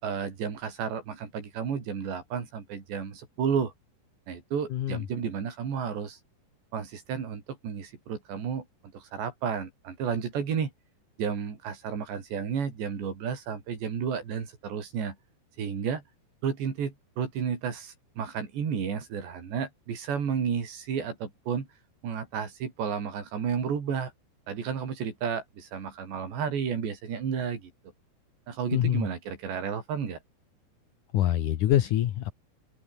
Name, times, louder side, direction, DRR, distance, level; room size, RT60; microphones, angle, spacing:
voice 1, 0.0-3.7 4.3-6.2 6.7-8.7 8.9-10.7 11.2-15.2 15.6-16.0 16.4-21.7 22.0-24.1 24.5-27.7 28.5-30.2, right 7 dB, 75° right, 6.5 m, -32 dB
voice 2, 4.7-5.1 28.7-29.1 31.1-32.3, left 12 dB, 70° left, 2.0 m, -25 dB
open air
omnidirectional pair, 5.1 m